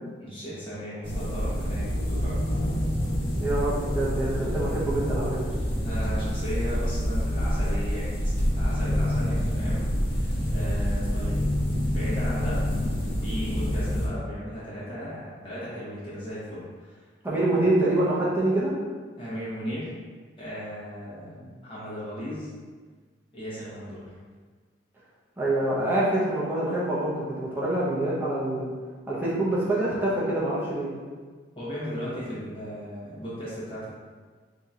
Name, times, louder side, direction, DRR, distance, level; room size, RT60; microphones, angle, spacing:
voice 1, 0.2-2.4 5.7-11.4 11.9-12.6 13.2-17.0 17.5-17.6 19.2-19.9 20.4-22.5 23.3-24.2 31.6-33.9, equal, 30° left, -10 dB, 1.2 m, -36 dB
sound 1, 1.0-14.1, equal, 75° left, 1.1 m, -27 dB
voice 2, 3.4-5.4 17.2-18.7 25.4-28.6 29.1-30.9, right 1 dB, 10° right, -7 dB, 0.7 m, -25 dB
2.8 x 2.8 x 3.6 m, 1.5 s
head